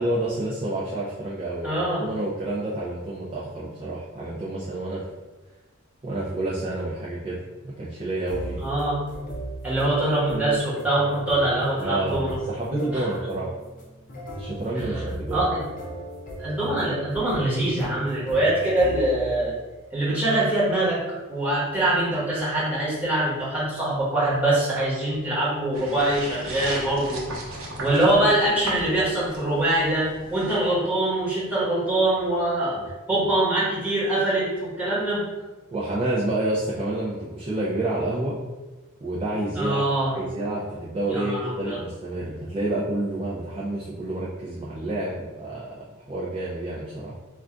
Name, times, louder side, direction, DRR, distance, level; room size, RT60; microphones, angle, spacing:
voice 1, 0.0-5.0 6.0-8.7 10.3-10.6 11.8-13.5 14.3-15.4 35.7-38.4 39.0-47.1, right 1 dB, 25° right, -7 dB, 0.4 m, -29 dB
voice 2, 1.6-2.0 8.6-9.0 9.6-12.3 12.9-13.0 14.8-14.9 15.3-15.6 16.4-19.5 19.9-21.0 21.3-27.2 27.8-32.8 33.1-35.2 39.6-40.1 41.1-41.8, right 1 dB, 5° right, -9 dB, 1.1 m, -23 dB
sound 1, 8.3-19.4, right 1 dB, 40° left, 0.6 m, -37 dB
sound 2, 25.7-30.6, right 1 dB, 80° right, 0.7 m, -36 dB
2.4 x 2.2 x 3.7 m, 1.2 s
head